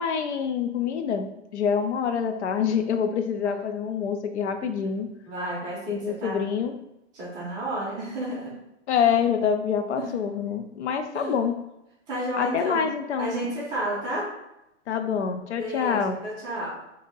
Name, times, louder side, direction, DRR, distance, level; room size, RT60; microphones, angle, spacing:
voice 1, 0.0-5.1 5.9-6.7 8.9-11.6 12.4-13.4 14.9-16.2, left 7 dB, 70° left, 7 dB, 0.5 m, -26 dB
voice 2, 5.3-6.4 7.1-8.5 10.0-10.1 11.1-11.3 12.1-12.8 13.2-14.3 15.6-16.8, right 1 dB, 10° right, -7 dB, 0.5 m, -31 dB
2.8 x 2.6 x 3.9 m, 0.88 s
hypercardioid pair, 155°, 36 cm